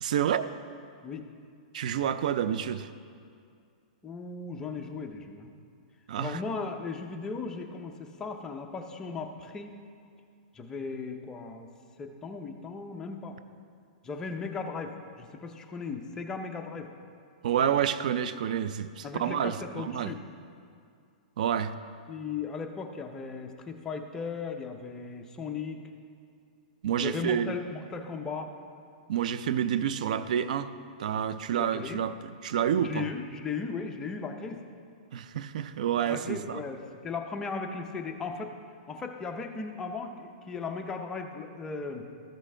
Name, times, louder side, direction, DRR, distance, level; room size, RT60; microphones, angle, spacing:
voice 1, 0.0-0.5 1.7-2.9 6.1-6.4 17.4-20.1 21.4-21.7 26.8-27.6 29.1-30.7 31.0-33.1 35.1-36.6, right 9 dB, 65° right, 13 dB, 0.4 m, -29 dB
voice 2, 4.0-5.5 6.2-9.7 10.5-11.7 12.0-13.4 14.0-16.9 19.0-20.2 22.1-25.8 27.0-28.5 31.5-32.0 32.8-34.6 36.0-38.5 38.9-42.0, left 4 dB, 15° left, 4 dB, 0.5 m, -37 dB
14.0 x 6.0 x 3.3 m, 2.3 s
hypercardioid pair, 155°, 4 cm